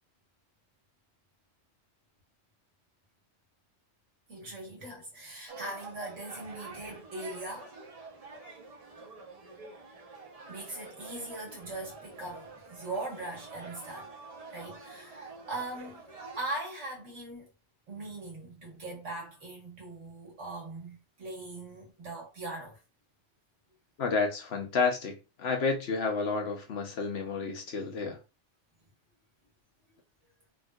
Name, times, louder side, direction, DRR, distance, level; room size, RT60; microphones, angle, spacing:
voice 1, 4.3-7.7 10.5-14.1 14.5-16.0 16.3-17.5 17.9-22.8, right 2 dB, 80° right, 1.7 m, -40 dB
sound 1, 5.5-16.4, right 3 dB, 40° right, 0.6 m, -47 dB
voice 2, 24.0-28.2, left 4 dB, 60° left, 1.0 m, -30 dB
3.6 x 2.6 x 2.3 m
omnidirectional pair, 1.2 m